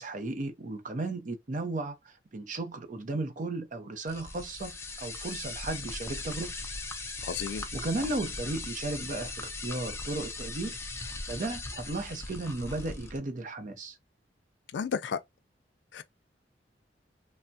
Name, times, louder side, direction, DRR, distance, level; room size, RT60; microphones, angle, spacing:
voice 1, 0.0-4.7 5.0-6.5 7.4-14.0, right 2 dB, 45° right, 0.5 m, -35 dB
sound 1, 4.1-13.2, left 3 dB, 15° left, 0.5 m, -39 dB
voice 2, 7.2-7.7 14.7-15.2 15.9-16.0, left 6 dB, 75° left, 0.4 m, -32 dB
3.3 x 2.0 x 2.6 m
head